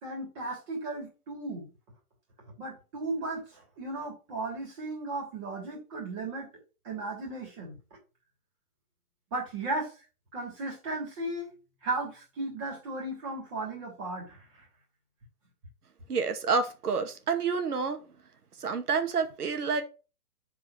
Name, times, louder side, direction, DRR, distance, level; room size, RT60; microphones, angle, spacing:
voice 1, 0.0-1.6 2.6-6.5 6.8-7.8 9.3-9.9 10.3-11.5 11.8-14.6, right 2 dB, 20° right, 3.2 m, -35 dB
voice 2, 16.1-18.0 18.6-19.8, right 5 dB, 80° right, 2.0 m, -28 dB
7.1 x 4.9 x 6.5 m
hypercardioid pair, 175°, 45 cm